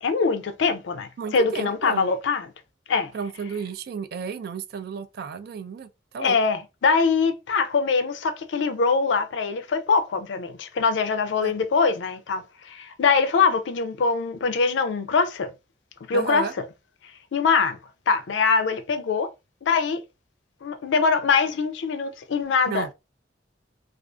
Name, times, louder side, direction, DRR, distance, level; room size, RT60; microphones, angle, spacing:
voice 1, 0.0-2.5 2.9-3.1 6.2-15.5 16.1-16.5 17.3-17.8 18.1-19.3 19.6-20.0 20.6-22.9, left 5 dB, 80° left, 0.4 m, -23 dB
voice 2, 1.2-2.1 3.1-5.9 6.1-6.4 11.4-11.5 16.1-16.5 22.7-22.9, right 6 dB, 55° right, 0.3 m, -32 dB
2.5 x 2.3 x 2.2 m
head